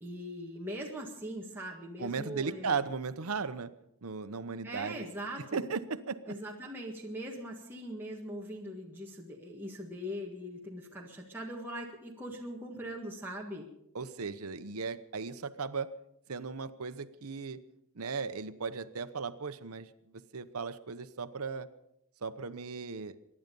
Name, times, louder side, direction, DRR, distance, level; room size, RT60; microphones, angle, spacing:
voice 1, 0.0-2.8 4.6-5.6 6.3-13.7, equal, 10° right, -3 dB, 1.8 m, -41 dB
voice 2, 2.0-3.7 4.0-5.1 5.5-6.3 13.9-15.9 16.3-17.6 17.9-21.7 22.2-23.2, right 5 dB, 80° right, 11 dB, 0.9 m, -36 dB
24.0 x 11.0 x 5.4 m, 0.79 s
head